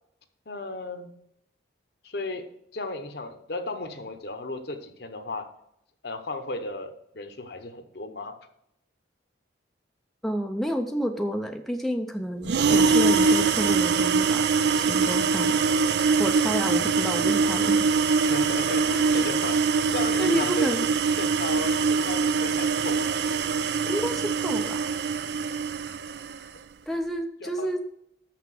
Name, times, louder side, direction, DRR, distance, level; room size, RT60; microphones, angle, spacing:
voice 1, 0.5-1.1 2.0-2.5 2.7-5.5 6.0-8.4 18.3-20.7 21.2-23.2 27.4-27.7, left 2 dB, 55° left, 8 dB, 1.0 m, -35 dB
voice 2, 10.2-14.5 14.8-15.6 16.0-17.9 19.0-19.2 20.2-20.9 23.9-24.9 26.9-27.8, equal, ahead, 3 dB, 0.5 m, -30 dB
sound 1, 12.4-26.4, right 5 dB, 60° right, 0.4 m, -23 dB
7.0 x 5.9 x 7.5 m, 0.77 s
head